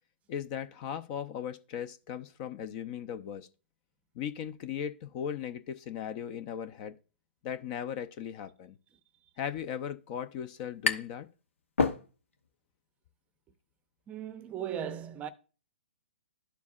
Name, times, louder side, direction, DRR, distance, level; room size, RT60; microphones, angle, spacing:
voice 1, 0.3-3.5 4.1-6.9 7.4-8.8 9.4-11.3, left 9 dB, 40° left, 0.6 m, -37 dB
sound 1, 10.0-11.3 11.6-12.5, left 4 dB, 85° left, 1.0 m, -30 dB
voice 2, 14.1-15.3, right 9 dB, 20° right, 0.6 m, -37 dB
12.5 x 4.6 x 2.4 m
hypercardioid pair, 135°, 7 cm